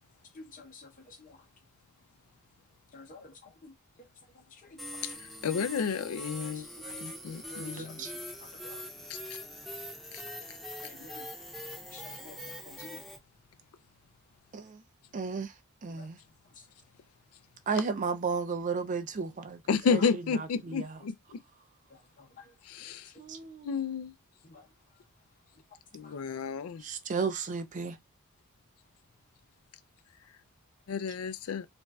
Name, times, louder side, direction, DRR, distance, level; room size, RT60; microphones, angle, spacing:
voice 1, 0.4-0.9 2.9-3.3 3.6-3.7 6.8-7.0 7.5-7.9 8.6-8.8 10.8-11.2 11.9-12.4 12.7-12.9 16.0-16.1, left 3 dB, 40° left, 0.8 m, -48 dB
sound 1, 4.8-13.2, left 1 dB, ahead, 0.7 m, -43 dB
voice 2, 5.0-6.7 7.0-8.0 9.1-9.2 19.7-21.4 22.6-23.1 23.6-24.1 25.9-26.8 30.9-31.7, left 6 dB, 85° left, 0.4 m, -31 dB
voice 3, 7.8-8.1 14.5-14.8 15.1-15.5 15.8-16.2 17.7-19.6 19.9-20.0 20.4-21.0 23.2-23.8 26.8-28.0, right 5 dB, 35° right, 0.4 m, -33 dB
3.2 x 2.5 x 2.3 m
head